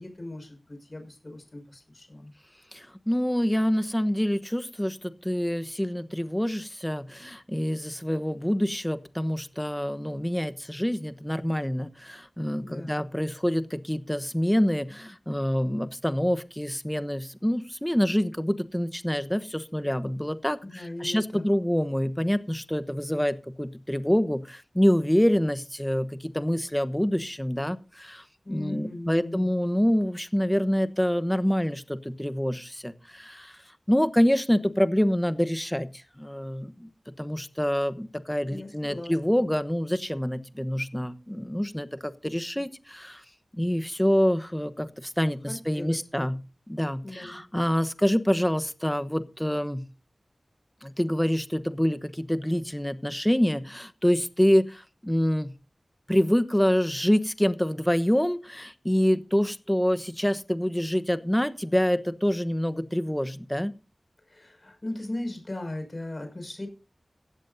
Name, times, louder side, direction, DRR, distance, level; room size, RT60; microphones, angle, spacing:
voice 1, 0.0-2.3 12.6-13.0 20.7-21.5 28.4-29.5 38.5-39.5 45.4-46.1 47.0-47.5 64.3-66.7, left 1 dB, 40° left, 6 dB, 6.0 m, -38 dB
voice 2, 2.7-28.2 28.5-33.6 33.9-36.9 37.2-43.2 43.6-46.4 46.7-49.8 50.8-55.5 56.1-63.7, equal, 10° left, 12 dB, 1.0 m, -26 dB
16.0 x 13.5 x 2.7 m, 0.32 s
wide cardioid pair, 70°, 0 cm